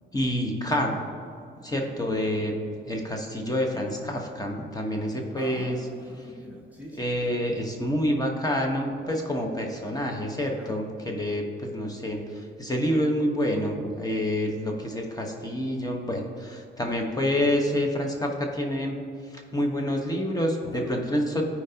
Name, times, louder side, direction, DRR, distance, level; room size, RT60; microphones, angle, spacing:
voice 1, 0.1-1.0 1.6-5.8 7.0-19.0 19.3-21.4, equal, 20° left, 1 dB, 1.2 m, -28 dB
voice 2, 5.4-7.4 10.5-10.8 20.7-20.9, equal, 10° right, -2 dB, 0.9 m, -44 dB
14.0 x 4.7 x 2.9 m, 2.4 s
cardioid pair, 90°, 20 cm